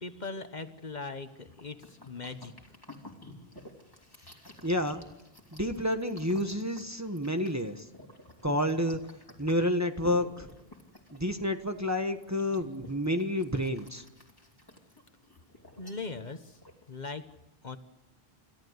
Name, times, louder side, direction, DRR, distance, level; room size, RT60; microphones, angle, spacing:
voice 1, 0.0-2.5 15.8-16.6 16.9-17.2 17.6-17.8, left 3 dB, 45° left, 9 dB, 1.3 m, -40 dB
sound 1, 1.3-17.1, left 1 dB, 20° left, 3.1 m, -53 dB
voice 2, 4.6-5.0 5.5-7.8 8.4-9.0 9.4-10.5 11.1-14.0, left 1 dB, 15° right, 5 dB, 1.2 m, -29 dB
29.5 x 14.0 x 8.1 m, 0.99 s
omnidirectional pair, 1.0 m